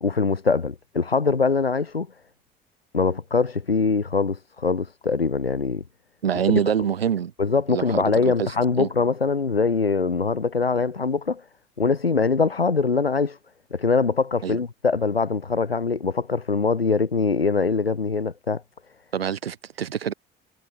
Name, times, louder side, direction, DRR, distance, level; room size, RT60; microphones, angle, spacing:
voice 1, 0.0-2.1 2.9-5.8 6.5-6.6 7.4-11.4 11.8-13.4 13.7-18.6, left 4 dB, 90° left, 1.5 m, -23 dB
voice 2, 6.2-7.3 7.7-8.9 14.4-14.6 19.1-20.1, right 8 dB, 85° right, 4.8 m, -26 dB
figure-of-eight pair, 45°, 29 cm